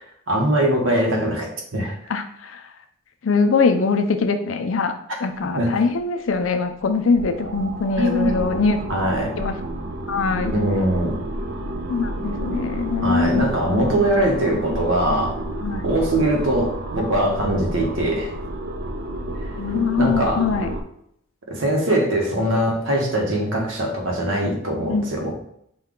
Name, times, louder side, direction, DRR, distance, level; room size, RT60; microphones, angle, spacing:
voice 1, 0.3-1.9 5.6-5.8 8.0-8.4 8.9-9.4 10.5-11.2 13.0-15.4 15.8-18.3 20.0-20.4 21.5-25.3, right 1 dB, 85° right, 0 dB, 1.1 m, -21 dB
voice 2, 2.1-2.6 3.2-4.9 5.2-8.8 9.4-9.5 10.1-10.5 11.8-13.4 15.6-15.8 19.6-20.7 24.9-25.1, left 4 dB, 90° left, 8 dB, 0.5 m, -22 dB
sound 1, 6.0-6.1 6.3-6.5 6.9-20.8, right 1 dB, 55° right, 0.5 m, -30 dB
5.4 x 2.3 x 3.7 m, 0.72 s
head